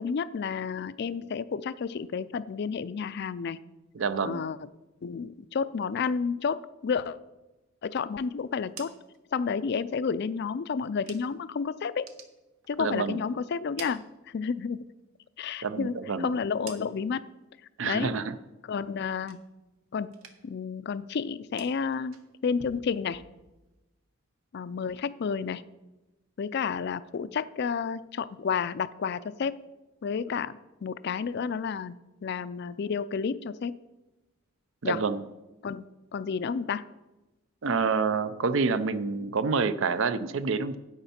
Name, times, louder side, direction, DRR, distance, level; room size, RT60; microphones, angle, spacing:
voice 1, 0.0-3.6 4.2-4.6 5.0-7.2 7.8-8.9 9.3-12.1 12.7-14.8 15.4-17.2 17.8-18.1 18.7-19.4 19.9-20.1 20.4-23.2 24.5-25.6 26.4-29.6 30.0-32.0 32.2-33.8 34.8-35.0 35.6-35.9 36.1-36.8, left 6 dB, 50° left, 15 dB, 0.4 m, -31 dB
voice 2, 3.9-4.4 12.8-13.2 15.6-16.3 17.8-18.3 34.8-35.3 37.6-40.8, right 4 dB, 65° right, 13 dB, 0.5 m, -27 dB
sound 1, 8.4-11.5 11.9-13.2 13.5-14.8 15.2-17.3 17.7-18.1 18.5-19.8 20.1-20.7 20.9-23.8, right 6 dB, 80° right, 1.0 m, -51 dB
10.5 x 8.1 x 4.3 m, 1.0 s
head